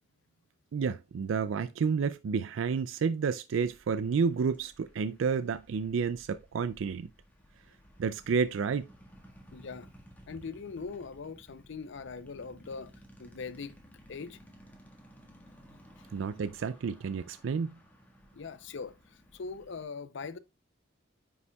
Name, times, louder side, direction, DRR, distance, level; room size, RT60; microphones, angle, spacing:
voice 1, 0.7-7.1 8.0-8.9 16.1-17.7, right 5 dB, 70° right, 0.4 m, -30 dB
sound 1, 3.5-19.8, equal, 10° left, 1.5 m, -57 dB
voice 2, 9.5-9.9 10.3-12.9 13.2-13.7 14.1-14.4 16.0-16.1 18.3-20.4, left 4 dB, 65° left, 0.5 m, -41 dB
9.6 x 5.5 x 2.3 m
head